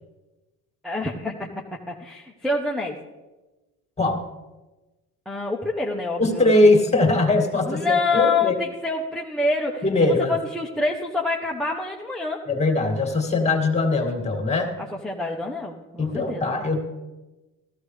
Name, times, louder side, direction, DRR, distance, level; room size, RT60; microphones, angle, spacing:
voice 1, 0.8-1.5 1.9-3.0 5.3-6.5 7.7-9.8 10.3-12.4 15.0-16.5, left 3 dB, ahead, 0 dB, 1.0 m, -26 dB
voice 2, 6.2-8.6 9.8-10.4 12.5-14.7 16.0-16.8, left 2 dB, 20° left, 3 dB, 2.1 m, -21 dB
14.0 x 14.0 x 3.3 m, 1.1 s
cardioid pair, 100°, 34 cm